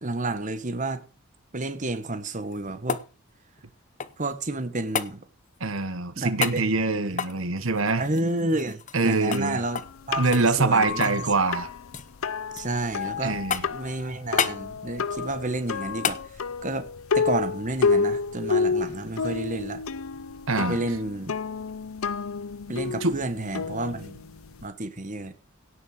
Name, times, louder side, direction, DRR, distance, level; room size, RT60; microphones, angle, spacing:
voice 1, 0.0-1.0 1.5-3.0 4.2-5.2 6.2-7.1 8.0-9.8 10.1-11.3 12.5-13.4 13.7-16.2 16.6-16.9 17.1-19.8 20.6-21.3 22.7-24.2 24.6-25.3, right 2 dB, 35° right, 1.3 m, -30 dB
sound 1, 2.3-4.3 4.9-5.1 6.4-6.6 7.1-9.1 9.3-9.5 9.7-10.0 10.3-11.2 11.5-12.1 12.6-13.1 13.5-13.9 14.4-14.6 16.0-16.2 18.6-18.7, left 6 dB, 35° left, 0.9 m, -31 dB
voice 2, 5.6-8.1 8.9-9.6 10.2-11.7 13.2-13.7 20.5-20.8 23.0-23.2, right 3 dB, 70° right, 1.3 m, -24 dB
sound 2, 9.3-24.7, left 5 dB, 75° left, 0.6 m, -30 dB
17.0 x 6.5 x 6.5 m
head